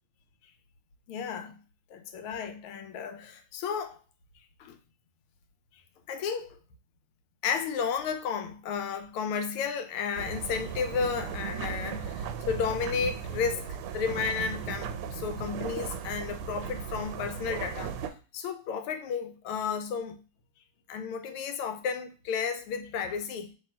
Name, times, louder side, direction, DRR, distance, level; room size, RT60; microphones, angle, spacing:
voice 1, 1.1-1.6 1.9-4.0 4.6-4.8 6.1-6.6 7.4-13.6 13.9-18.0 18.3-20.2 20.9-23.5, left 6 dB, 90° left, 1.5 m, -32 dB
sound 1, 10.1-18.1, right 7 dB, 90° right, 1.5 m, -36 dB
3.4 x 2.9 x 4.3 m
omnidirectional pair, 2.3 m